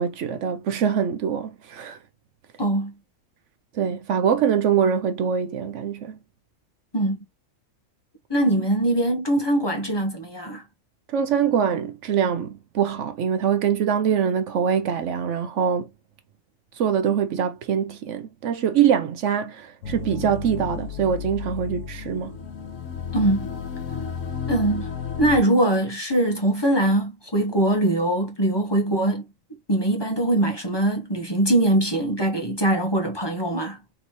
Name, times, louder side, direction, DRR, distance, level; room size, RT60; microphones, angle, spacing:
voice 1, 0.0-2.0 3.7-6.2 11.1-15.9 16.8-22.3, right 8 dB, 70° right, 0.9 m, -23 dB
voice 2, 2.6-2.9 6.9-7.2 8.3-10.6 23.1-23.5 24.5-24.9 25.2-29.2 29.7-33.8, right 1 dB, 20° left, 1.2 m, -22 dB
sound 1, 19.8-25.4, left 7 dB, 75° left, 1.3 m, -32 dB
4.1 x 3.6 x 3.0 m
omnidirectional pair, 1.4 m